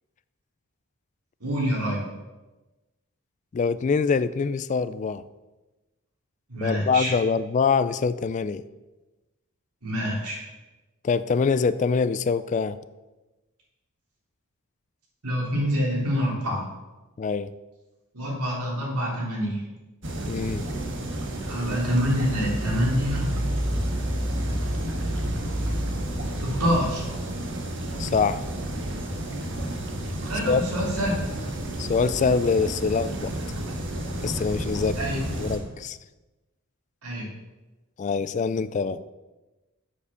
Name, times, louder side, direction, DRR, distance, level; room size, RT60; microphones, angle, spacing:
voice 1, 1.4-2.1 6.5-7.1 9.8-10.4 15.2-16.6 18.1-19.7 21.5-23.3 26.4-27.0 30.2-31.2 35.0-35.3 37.0-37.3, equal, 90° right, -3 dB, 3.3 m, -26 dB
voice 2, 3.5-5.2 6.6-8.6 11.0-12.8 17.2-17.5 20.3-20.6 28.0-28.4 30.5-30.6 31.8-33.3 34.2-35.0 35.4-36.0 38.0-39.0, left 5 dB, 35° left, 15 dB, 0.3 m, -24 dB
sound 1, 20.0-35.6, right 1 dB, 55° right, 1.6 m, -30 dB
7.2 x 7.0 x 6.8 m, 1.1 s
head